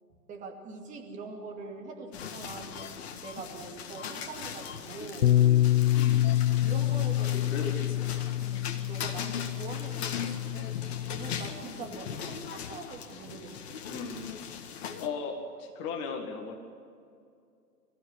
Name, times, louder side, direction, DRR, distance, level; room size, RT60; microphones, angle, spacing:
voice 1, 0.3-5.4 6.6-7.6 8.4-10.7 11.1-13.8, right 4 dB, 15° right, 2 dB, 2.4 m, -43 dB
sound 1, 2.1-15.1, left 7 dB, 40° left, 1.9 m, -40 dB
Bass guitar, 5.2-11.5, left 13 dB, 65° left, 0.6 m, -27 dB
voice 2, 7.3-8.4 13.9-14.2 15.0-16.6, left 4 dB, 25° left, 4 dB, 2.1 m, -37 dB
26.5 x 14.5 x 8.5 m, 2.4 s
figure-of-eight pair, 130°, 49 cm